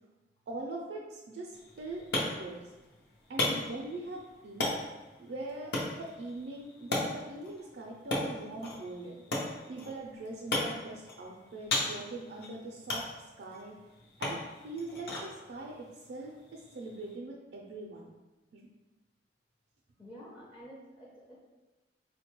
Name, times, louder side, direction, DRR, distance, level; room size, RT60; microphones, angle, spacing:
voice 1, 0.5-2.6 3.3-4.8 5.2-9.2 9.7-13.0 13.4-13.7 14.2-14.4 14.6-18.1 18.5-18.7, right 2 dB, 65° right, -3 dB, 0.4 m, -42 dB
sound 1, 1.5-17.1, left 2 dB, 65° left, 0.6 m, -37 dB
voice 2, 20.0-21.4, equal, 25° left, -6 dB, 0.5 m, -50 dB
3.9 x 2.2 x 2.9 m, 1.1 s
head